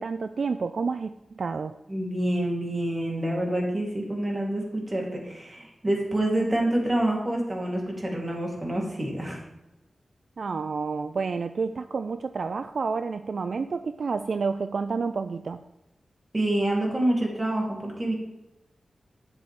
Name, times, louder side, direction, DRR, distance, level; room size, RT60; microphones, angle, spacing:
voice 1, 0.0-1.8 10.4-15.6, right 4 dB, 75° right, 10 dB, 0.3 m, -29 dB
voice 2, 1.9-9.4 16.3-18.1, right 1 dB, 30° right, -2 dB, 3.4 m, -27 dB
10.0 x 7.7 x 3.6 m, 0.94 s
cardioid pair, 50°, 0 cm